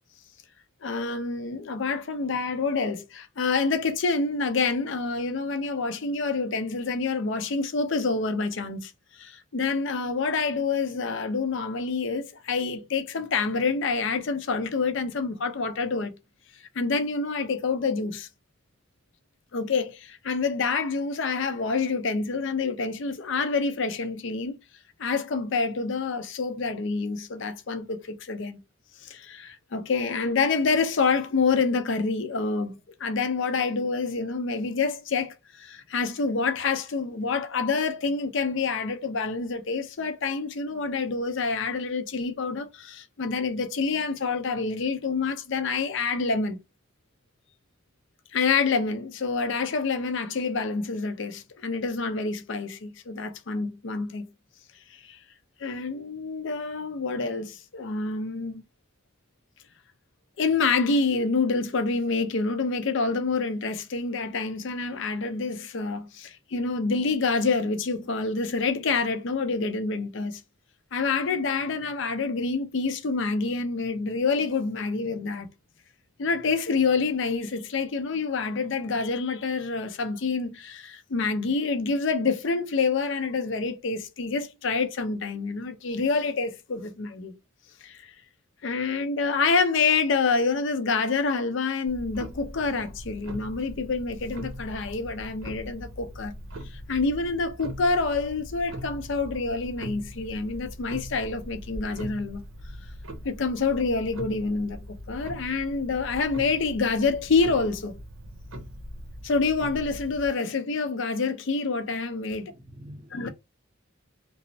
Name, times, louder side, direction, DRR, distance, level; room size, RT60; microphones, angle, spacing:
voice 1, 0.8-16.1 16.8-18.3 19.5-24.6 25.0-28.6 29.0-46.6 48.3-54.3 54.9-55.2 55.6-58.6 60.4-70.4 70.9-75.5 76.2-87.3 87.8-88.1 88.6-96.3 96.7-102.4 103.2-108.0 109.2-112.5 113.1-113.3, left 4 dB, 65° left, 0.5 m, -27 dB
Clock, 91.9-110.3, equal, 85° right, 0.6 m, -41 dB
voice 2, 112.3-113.3, equal, 25° right, 0.5 m, -46 dB
3.0 x 2.0 x 2.6 m
head